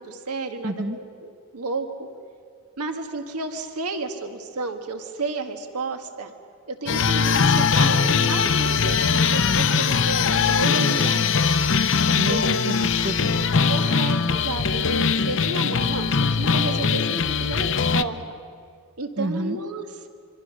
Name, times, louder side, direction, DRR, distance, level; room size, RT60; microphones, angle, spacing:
voice 1, 0.0-2.1 2.8-6.3 6.6-11.3 12.1-12.4 13.7-18.3 19.0-20.1, right 3 dB, 90° right, 6 dB, 1.7 m, -32 dB
voice 2, 0.6-1.0 12.2-13.5 19.2-19.6, right 1 dB, 50° right, 10 dB, 1.1 m, -29 dB
sound 1, 6.9-18.0, left 5 dB, 55° left, 0.7 m, -21 dB
25.5 x 24.5 x 6.5 m, 2.2 s
head